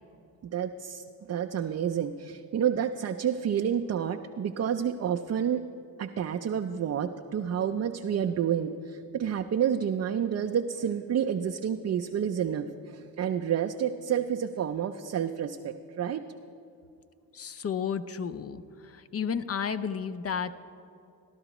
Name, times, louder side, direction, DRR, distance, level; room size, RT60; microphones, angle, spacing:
voice 1, 0.4-5.6 6.0-16.2, right 8 dB, 35° right, 4 dB, 0.5 m, -29 dB
voice 2, 17.3-20.5, left 7 dB, 35° left, 12 dB, 0.5 m, -32 dB
14.5 x 11.5 x 3.0 m, 2.6 s
supercardioid pair, 55°, 44 cm